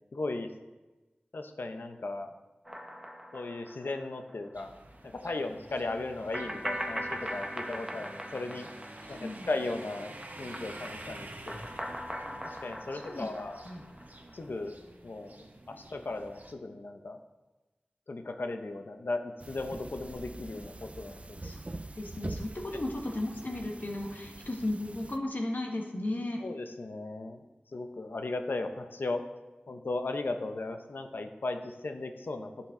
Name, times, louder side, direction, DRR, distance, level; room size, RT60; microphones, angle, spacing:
voice 1, 0.1-0.5 1.3-2.3 3.3-4.8 5.0-8.7 9.1-11.7 12.4-13.6 14.3-17.2 18.1-21.4 26.4-27.4 27.7-29.2 29.7-32.5, left 2 dB, 90° left, 6 dB, 0.7 m, -36 dB
sound 1, 2.6-4.3 4.6-4.7 6.3-9.8 10.1-14.3, equal, 15° right, 1.0 m, -40 dB
sound 2, 4.5-16.5, right 1 dB, 55° right, 1.1 m, -49 dB
voice 2, 9.1-9.5 12.9-13.3 13.6-13.8 21.4-21.6 21.9-26.4, left 1 dB, 60° left, 1 dB, 1.6 m, -35 dB
sound 3, 19.4-25.2, right 2 dB, 40° right, 0.5 m, -44 dB
13.0 x 5.8 x 3.8 m, 1.1 s
wide cardioid pair, 65°, 3 cm